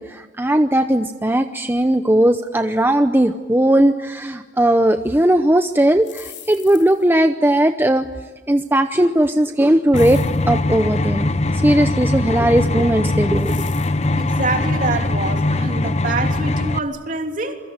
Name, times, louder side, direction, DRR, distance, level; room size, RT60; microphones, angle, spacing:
voice 1, 0.0-8.1 8.5-13.6, right 1 dB, 10° right, 8 dB, 0.8 m, -17 dB
sound 1, 6.0-7.1 9.9-10.5 13.4-14.1, left 12 dB, 65° left, 3.8 m, -40 dB
sound 2, 9.9-16.8, left 2 dB, 35° left, 0.9 m, -21 dB
voice 2, 14.1-17.6, right 3 dB, 45° right, 4 dB, 3.1 m, -25 dB
28.0 x 23.5 x 8.9 m, 1.4 s
head